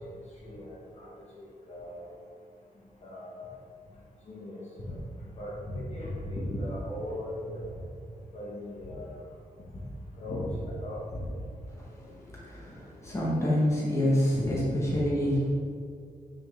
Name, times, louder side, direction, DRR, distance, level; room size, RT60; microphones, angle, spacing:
voice 1, 0.4-1.1 1.7-2.1 3.0-3.6 4.3-5.0 5.4-7.7 8.3-9.2 9.7-9.8 10.2-10.5 10.8-11.2 14.3-14.5 14.9-15.0, left 1 dB, 45° left, -5 dB, 1.5 m, -37 dB
voice 2, 11.9-12.7 13.0-15.4, left 1 dB, 20° left, -6 dB, 1.5 m, -27 dB
6.5 x 6.3 x 3.7 m, 2.2 s
wide cardioid pair, 150°, 15 cm